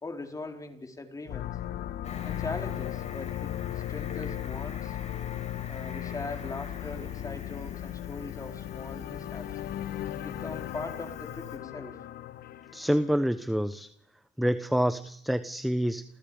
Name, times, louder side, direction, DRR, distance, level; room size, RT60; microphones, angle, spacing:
voice 1, 0.0-1.5 2.2-3.5 3.9-5.0 5.7-9.5 10.2-12.0, left 3 dB, 20° left, 4 dB, 4.5 m, -40 dB
sound 1, 1.3-13.2, left 12 dB, 65° left, 1.4 m, -37 dB
Cricket, 2.0-11.6, left 5 dB, 40° left, 7.3 m, -47 dB
voice 2, 12.7-13.9 14.4-16.0, equal, ahead, 12 dB, 1.0 m, -27 dB
29.5 x 29.0 x 5.2 m, 0.68 s
cardioid pair, 110°, 17 cm